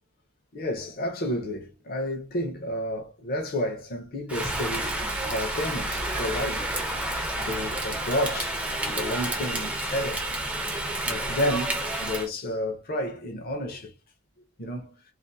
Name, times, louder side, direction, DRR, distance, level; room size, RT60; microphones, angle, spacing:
voice 1, 0.5-6.7 7.4-10.3 11.0-13.9 14.6-15.0, left 1 dB, 45° left, 0.6 m, -31 dB
Rain, 4.3-12.3, right 1 dB, 5° right, 0.5 m, -30 dB
2.5 x 2.4 x 2.6 m
head